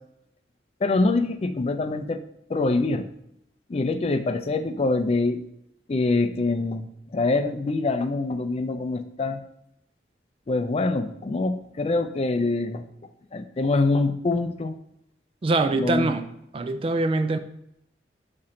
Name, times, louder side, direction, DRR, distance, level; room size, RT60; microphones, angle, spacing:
voice 1, 0.8-2.2 2.5-3.1 3.7-5.4 5.9-6.9 7.1-9.4 10.5-12.9 13.3-14.7 15.8-16.1, left 3 dB, 35° left, 10 dB, 0.4 m, -24 dB
voice 2, 15.4-16.3 16.5-17.4, right 2 dB, 30° right, 10 dB, 0.3 m, -23 dB
5.9 x 4.4 x 3.7 m, 0.79 s
head